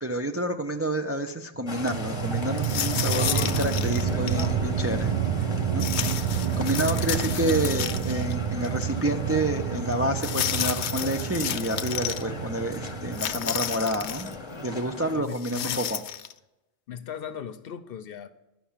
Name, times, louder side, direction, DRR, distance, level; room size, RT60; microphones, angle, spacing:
voice 1, 0.0-5.1 5.7-5.9 6.6-14.3 14.6-16.0, right 1 dB, 25° right, 4 dB, 0.3 m, -29 dB
sound 1, 1.6-13.9, right 8 dB, 40° right, 0.7 m, -29 dB
sound 2, 1.7-15.2, left 2 dB, 30° left, 0.9 m, -37 dB
sound 3, 2.6-4.5 5.8-8.3 8.6-8.7 10.2-12.2 13.1-14.3 15.3-16.3, left 10 dB, 90° left, 0.9 m, -31 dB
voice 2, 6.8-7.2 7.6-8.0 15.1-15.9 16.9-18.3, left 9 dB, 65° left, 12 dB, 0.8 m, -38 dB
11.5 x 5.8 x 7.3 m, 0.96 s
omnidirectional pair, 1.1 m